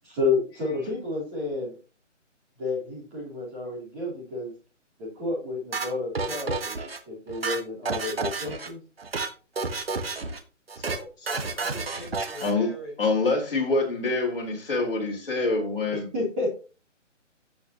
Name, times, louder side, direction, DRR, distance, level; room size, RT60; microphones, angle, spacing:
voice 1, 0.2-1.8 2.6-4.5 5.0-8.8 15.9-16.5, left 3 dB, 10° right, -6 dB, 2.8 m, -30 dB
sound 1, 5.7-7.0 7.3-8.7 9.0-9.3 9.6-10.4 10.7-11.0 11.3-12.5, right 4 dB, 50° right, 1.4 m, -30 dB
voice 2, 10.7-13.4, left 1 dB, 15° left, -6 dB, 3.3 m, -43 dB
voice 3, 12.4-16.1, left 3 dB, 45° left, -1 dB, 4.0 m, -26 dB
16.5 x 5.6 x 2.9 m, 0.34 s
hypercardioid pair, 180°, 38 cm